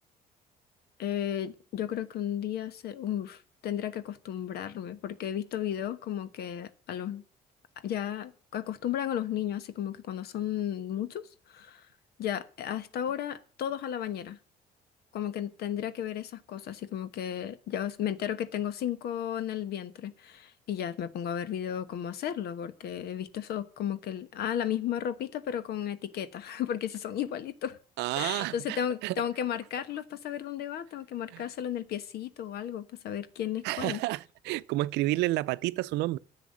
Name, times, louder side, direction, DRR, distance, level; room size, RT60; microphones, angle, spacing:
voice 1, 1.0-7.2 7.8-11.9 12.2-14.4 15.1-27.8 28.1-34.0, left 10 dB, 70° left, 1.2 m, -34 dB
voice 2, 28.0-29.2 31.3-31.5 33.6-36.2, right 18 dB, 85° right, 0.6 m, -30 dB
10.5 x 7.2 x 7.3 m
cardioid pair, 110°, 17 cm